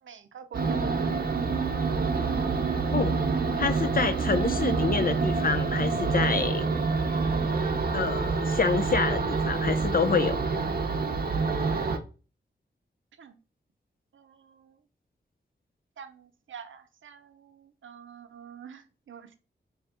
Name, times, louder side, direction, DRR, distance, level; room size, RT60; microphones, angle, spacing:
voice 1, 0.0-1.3 13.2-13.4 14.1-14.8 16.0-19.4, right 7 dB, 90° right, 0.4 m, -46 dB
sound 1, 0.5-12.0, right 4 dB, 50° right, 0.6 m, -27 dB
voice 2, 3.6-6.7 7.9-10.4, left 5 dB, 50° left, 0.4 m, -27 dB
3.5 x 2.8 x 3.5 m
wide cardioid pair, 70°, 20 cm